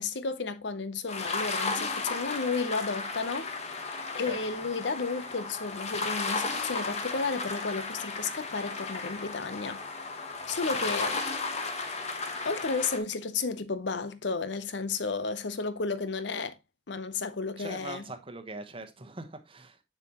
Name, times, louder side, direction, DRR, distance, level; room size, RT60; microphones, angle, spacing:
voice 1, 0.0-3.6 4.1-9.8 10.5-11.2 12.4-16.6 16.9-18.0, left 4 dB, 65° left, 0.8 m, -32 dB
sound 1, 1.1-13.0, left 3 dB, 35° left, 1.1 m, -34 dB
voice 2, 17.6-19.8, right 2 dB, 30° right, 1.0 m, -42 dB
6.8 x 6.8 x 2.9 m
head